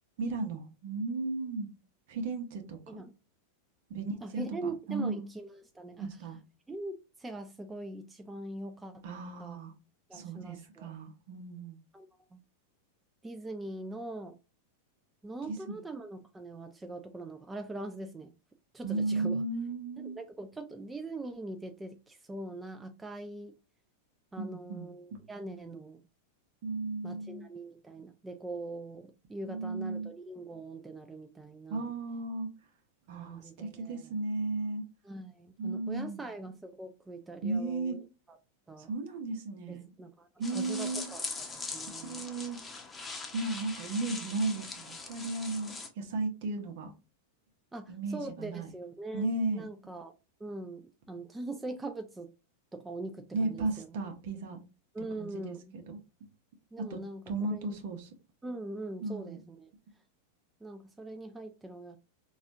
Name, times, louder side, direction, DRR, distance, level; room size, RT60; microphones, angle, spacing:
voice 1, 0.2-1.7 2.1-3.0 3.9-5.3 6.0-6.4 9.0-9.7 10.1-11.8 15.5-15.8 18.8-20.2 24.4-25.2 26.6-27.5 29.4-30.1 31.7-32.5 33.1-34.8 35.6-36.2 37.4-38.0 38.8-39.9 40.4-41.0 42.0-42.6 43.3-46.9 47.9-48.7 49.1-49.6 53.3-54.6 55.2-56.0 56.9-57.0 57.3-58.1 59.0-59.4, right 3 dB, 60° right, 1.0 m, -35 dB
voice 2, 4.2-6.1 6.7-9.0 9.4-9.6 10.1-10.9 11.9-12.1 12.3-12.4 13.2-14.4 15.2-18.3 18.7-19.4 20.0-23.6 24.3-26.0 27.0-31.9 33.2-34.1 35.0-38.0 38.7-38.9 39.7-42.2 47.7-50.1 50.4-52.3 52.7-54.0 54.9-55.6 56.7-57.2 57.5-57.8 58.4-59.7 60.6-62.0, right 2 dB, 10° right, 0.4 m, -42 dB
sound 1, 40.4-45.9, left 3 dB, 15° left, 0.8 m, -41 dB
4.1 x 2.4 x 2.6 m
hypercardioid pair, 100°, 0 cm